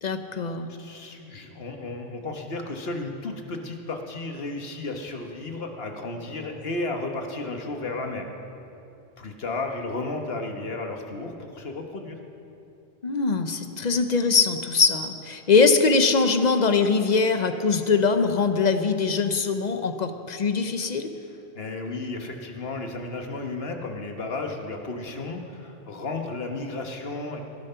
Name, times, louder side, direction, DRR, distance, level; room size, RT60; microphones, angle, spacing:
voice 1, 0.0-0.7 13.0-21.1, left 4 dB, 45° left, 8 dB, 0.8 m, -22 dB
voice 2, 0.7-8.3 9.2-12.2 21.5-27.4, left 2 dB, 65° left, 3 dB, 1.5 m, -33 dB
18.5 x 10.5 x 5.6 m, 2.8 s
omnidirectional pair, 1.1 m